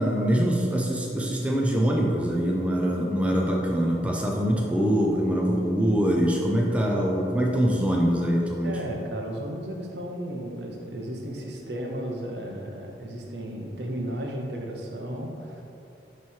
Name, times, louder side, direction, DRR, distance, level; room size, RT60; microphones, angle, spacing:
voice 1, 0.0-8.7, equal, 5° right, -2 dB, 0.5 m, -24 dB
voice 2, 8.6-15.6, right 1 dB, 65° right, 0 dB, 0.9 m, -34 dB
8.9 x 3.2 x 4.5 m, 2.7 s
head